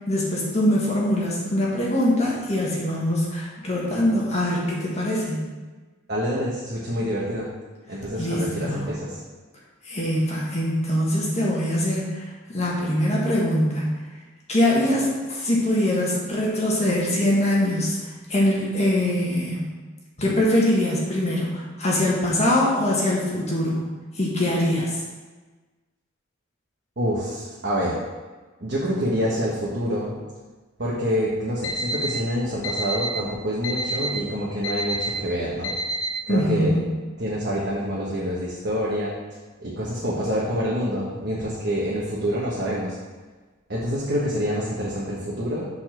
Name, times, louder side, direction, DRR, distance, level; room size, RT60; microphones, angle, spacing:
voice 1, 0.1-5.4 8.2-8.9 9.8-13.9 14.5-19.7 20.2-23.9 24.1-25.0 36.3-36.9, left 1 dB, 35° left, -5 dB, 1.7 m, -23 dB
voice 2, 6.1-7.5 7.9-9.2 27.0-28.0 28.6-30.2 30.8-35.7 36.3-36.8 37.2-39.2 39.6-43.0 43.7-45.7, equal, 55° right, -6 dB, 1.3 m, -26 dB
Alarm, 31.6-32.1 32.6-33.1 33.6-34.1 34.6-35.1 35.6-36.1, equal, 70° left, 1.1 m, -27 dB
6.8 x 4.2 x 6.0 m, 1.3 s
head